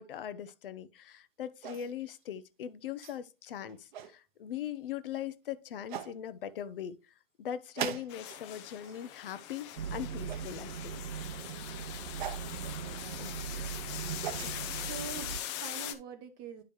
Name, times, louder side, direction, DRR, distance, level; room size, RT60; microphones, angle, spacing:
voice 1, 0.0-7.0 7.4-11.0 13.2-13.3 14.4-14.5 14.8-14.9, left 9 dB, 65° left, 0.8 m, -40 dB
sound 1, 1.6-2.2 3.0-3.2 3.7-4.1 5.2-5.3 5.9-6.1 7.8-8.4 8.7-9.1 10.3-10.5 12.2-12.5 13.9-14.6, right 10 dB, 50° right, 0.8 m, -39 dB
sound 2, 8.1-15.9, left 11 dB, 30° left, 0.7 m, -42 dB
sound 3, 9.8-15.4, right 8 dB, 85° right, 0.6 m, -40 dB
voice 2, 12.1-13.7 14.8-16.6, right 6 dB, 15° right, 0.4 m, -46 dB
10.0 x 5.0 x 3.1 m
hypercardioid pair, 145°, 30 cm